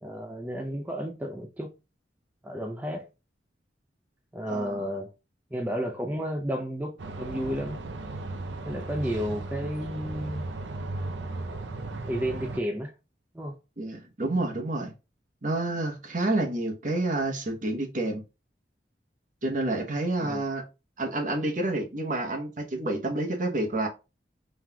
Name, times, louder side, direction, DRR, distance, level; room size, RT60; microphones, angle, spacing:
voice 1, 0.0-1.7 2.4-3.1 4.3-5.1 5.5-7.8 8.6-10.5 11.2-11.7 12.1-12.9 13.3-13.5 20.2-20.4, equal, 10° right, 0.5 m, -32 dB
voice 2, 4.5-4.9 13.8-14.9 15.4-18.2 19.4-20.6 21.0-23.9, right 2 dB, 45° right, 1.0 m, -29 dB
sound 1, 7.0-12.6, right 2 dB, 80° right, 0.6 m, -36 dB
5.6 x 3.1 x 2.2 m
head